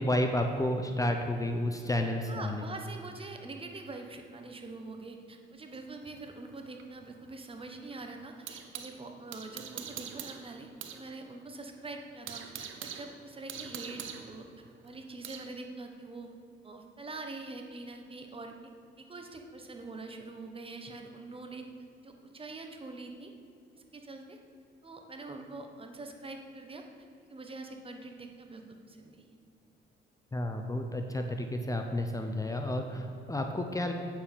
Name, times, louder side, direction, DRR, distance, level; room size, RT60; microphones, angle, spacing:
voice 1, 0.0-2.6 30.3-33.9, left 1 dB, 15° left, 4 dB, 0.7 m, -31 dB
voice 2, 2.3-14.5 14.8-16.3 16.6-18.5 19.0-21.6 22.0-23.3 23.7-24.4 24.8-26.8 27.3-29.3, right 3 dB, 25° right, 4 dB, 1.1 m, -44 dB
sound 1, 5.7-9.0 9.3-11.0 11.3-11.4 11.8-15.5, right 8 dB, 75° right, 0.9 m, -44 dB
8.6 x 7.3 x 5.4 m, 2.5 s
cardioid pair, 90°, 20 cm